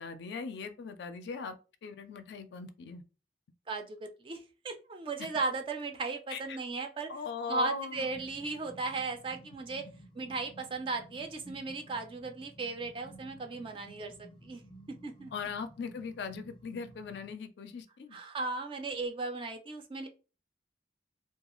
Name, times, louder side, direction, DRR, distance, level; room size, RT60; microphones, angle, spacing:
voice 1, 0.0-1.6 1.8-3.0 6.3-6.6 7.1-8.1 15.3-18.2, left 5 dB, 70° left, 0.4 m, -39 dB
voice 2, 3.7-7.1 7.5-9.9 10.2-14.6 15.0-15.3 18.1-20.1, right 3 dB, 30° right, 0.3 m, -36 dB
sound 1, 7.9-17.3, right 1 dB, 25° left, 0.6 m, -54 dB
2.3 x 2.3 x 2.9 m
head